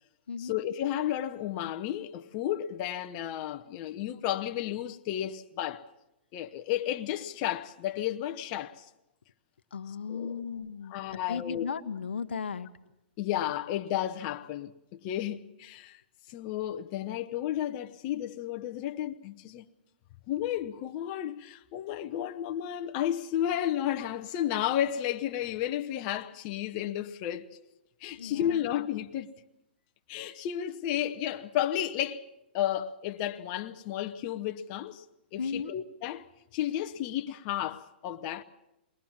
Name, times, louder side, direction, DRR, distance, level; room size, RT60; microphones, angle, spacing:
voice 1, 0.4-5.8 6.3-8.9 10.1-10.4 10.9-11.7 13.2-16.0 16.3-19.6 20.3-27.5 28.0-29.3 30.1-32.3 32.5-35.0 35.3-36.3 36.5-38.4, left 11 dB, 40° left, 0.8 m, -32 dB
voice 2, 9.7-10.9 11.3-12.7 28.2-28.7 35.4-35.7, left 6 dB, 90° left, 1.0 m, -35 dB
22.0 x 19.5 x 7.3 m
hypercardioid pair, 135°, 6 cm